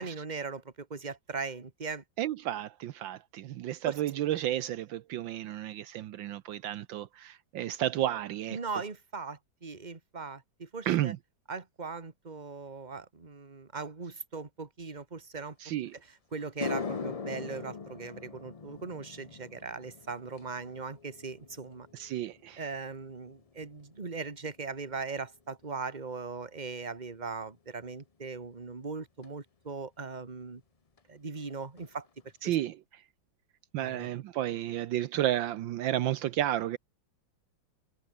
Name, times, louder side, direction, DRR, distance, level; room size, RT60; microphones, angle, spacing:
voice 1, 0.0-2.0 3.8-4.0 8.5-11.1 11.5-15.6 15.9-21.9 22.6-30.6 31.1-32.1 32.4-32.6 33.8-34.2, right 4 dB, 20° right, 2.0 m, -39 dB
voice 2, 2.2-8.6 10.8-11.2 15.6-15.9 21.9-22.6 32.4-32.8 33.7-36.8, right 12 dB, 75° right, 1.5 m, -32 dB
sound 1, 15.9-16.0 16.4-24.9 25.2-25.6 29.2-29.3 31.0-31.1 31.4-31.5 31.8-32.3, left 5 dB, 65° left, 0.3 m, -42 dB
omnidirectional pair, 2.1 m